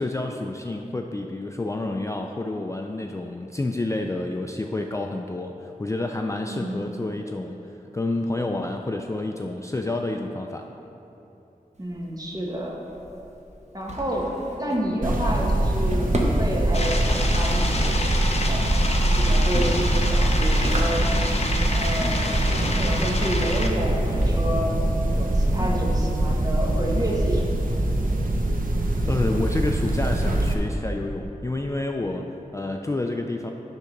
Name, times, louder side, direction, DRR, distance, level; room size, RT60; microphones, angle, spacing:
voice 1, 0.0-10.7 29.1-33.5, left 2 dB, 20° left, 3 dB, 0.3 m, -29 dB
voice 2, 6.4-6.8 11.8-12.8 13.7-14.3 14.6-18.7 19.0-21.1 21.7-24.8 25.1-27.5 27.7-27.8, equal, 25° right, -2 dB, 1.3 m, -29 dB
Drawer open or close, 11.7-26.9, right 1 dB, 50° right, 1.0 m, -36 dB
sound 1, 15.0-30.5, right 1 dB, 70° right, 0.7 m, -23 dB
sound 2, 16.7-23.7, left 2 dB, 45° left, 0.7 m, -29 dB
9.9 x 3.7 x 5.8 m, 3.0 s
wide cardioid pair, 80°, 15 cm